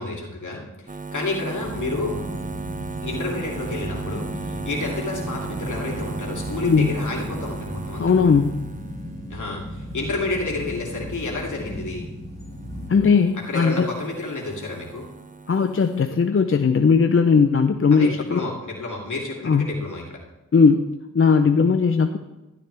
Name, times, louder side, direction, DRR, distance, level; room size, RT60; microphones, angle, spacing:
voice 1, 0.0-2.3 3.0-8.4 9.3-12.1 13.5-15.1 17.9-20.2, left 2 dB, 65° left, -2 dB, 2.8 m, -30 dB
sound 1, 0.9-12.1 12.4-16.0, right 4 dB, 25° right, 0.8 m, -37 dB
sound 2, 1.6-13.1, equal, 10° left, 4.1 m, -35 dB
voice 2, 6.6-6.9 8.0-8.5 12.9-13.9 15.5-18.4 19.4-19.7 20.5-20.9 21.1-22.2, left 5 dB, 40° left, 7 dB, 0.6 m, -18 dB
12.5 x 12.0 x 3.4 m, 1.0 s
cardioid pair, 60°, 32 cm